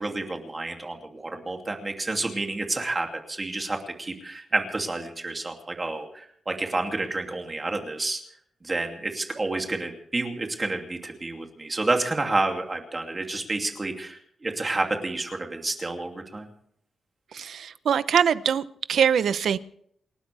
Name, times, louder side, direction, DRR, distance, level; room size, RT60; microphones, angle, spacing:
voice 1, 0.0-8.2 8.6-16.5, right 2 dB, 20° right, 3 dB, 2.6 m, -29 dB
voice 2, 17.3-19.6, right 8 dB, 70° right, 14 dB, 0.8 m, -23 dB
29.0 x 12.5 x 3.5 m, 0.66 s
wide cardioid pair, 150°, 0 cm